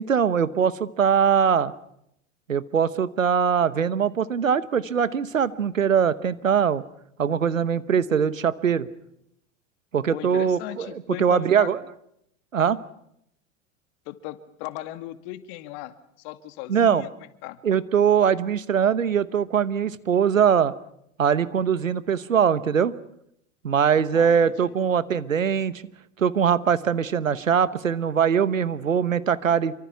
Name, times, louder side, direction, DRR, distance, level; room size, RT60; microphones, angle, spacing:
voice 1, 0.0-1.7 2.5-6.8 7.2-8.9 9.9-11.8 12.5-12.8 16.7-17.1 17.6-20.7 21.2-22.9 23.6-25.8 26.2-29.7, right 7 dB, 90° right, 16 dB, 1.1 m, -22 dB
voice 2, 10.1-11.7 14.1-17.1 17.4-17.6 24.1-24.8, left 15 dB, 55° left, 11 dB, 2.0 m, -37 dB
27.0 x 24.5 x 5.9 m, 0.75 s
hypercardioid pair, 85°, 38 cm